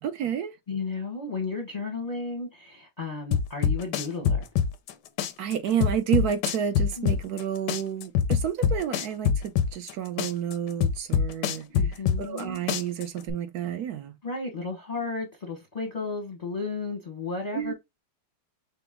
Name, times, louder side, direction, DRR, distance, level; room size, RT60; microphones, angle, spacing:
voice 1, 0.0-0.6 5.4-14.1 17.5-17.7, right 9 dB, 70° right, 0.9 m, -30 dB
voice 2, 0.7-4.5 7.0-7.1 11.7-12.6 14.2-17.7, left 4 dB, 35° left, 0.7 m, -33 dB
sound 1, 3.3-4.9 5.2-7.4 7.7-9.9 10.2-12.4 12.7-13.3, left 7 dB, 75° left, 1.0 m, -24 dB
6.0 x 2.0 x 3.5 m
omnidirectional pair, 2.2 m